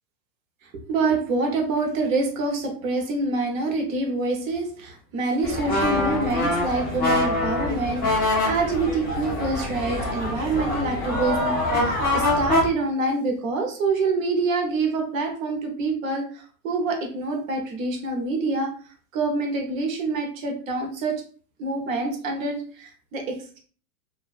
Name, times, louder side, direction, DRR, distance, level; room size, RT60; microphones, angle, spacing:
voice 1, 0.9-18.7 19.1-21.1 21.6-23.6, right 3 dB, 55° right, 2 dB, 0.9 m, -26 dB
sound 1, 5.4-12.7, left 2 dB, ahead, 0.4 m, -24 dB
2.4 x 2.3 x 2.4 m, 0.43 s
supercardioid pair, 160°, 47 cm